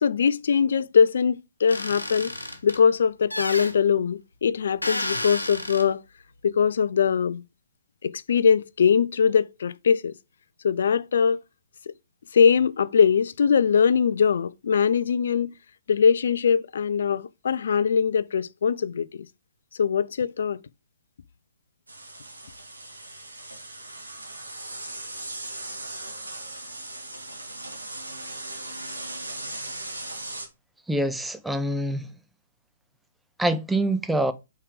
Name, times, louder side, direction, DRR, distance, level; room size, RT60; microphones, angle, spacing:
voice 1, 0.0-2.3 2.6-6.0 6.4-7.4 8.0-10.1 10.6-11.4 11.9-12.0 12.3-15.5 15.9-19.3 19.8-20.6, left 6 dB, 55° left, 0.4 m, -22 dB
sound 1, 1.7-2.8 3.3-3.7 4.8-5.8, left 1 dB, 80° left, 1.2 m, -31 dB
sound 2, 21.9-30.5, right 2 dB, 75° right, 1.9 m, -38 dB
voice 2, 30.9-32.1 33.4-34.3, right 1 dB, 5° right, 0.5 m, -25 dB
5.7 x 4.7 x 4.9 m
figure-of-eight pair, 125°, 0 cm